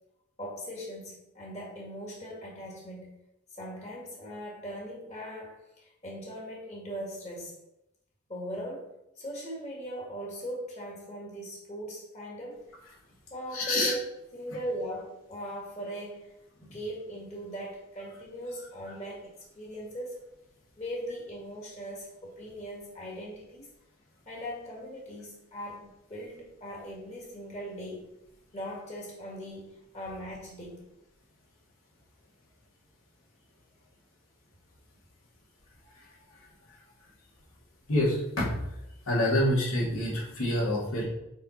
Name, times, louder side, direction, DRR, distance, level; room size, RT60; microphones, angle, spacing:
voice 1, 0.4-3.2 3.5-7.5 8.3-12.7 13.3-14.0 14.3-16.3 16.6-20.2 20.8-23.7 24.3-28.1 28.5-30.8, equal, 30° left, -3 dB, 1.8 m, -39 dB
voice 2, 13.5-13.9 35.9-36.1 37.9-38.6 39.1-41.0, left 1 dB, 80° left, -5 dB, 2.6 m, -27 dB
5.6 x 4.6 x 4.5 m, 0.87 s
head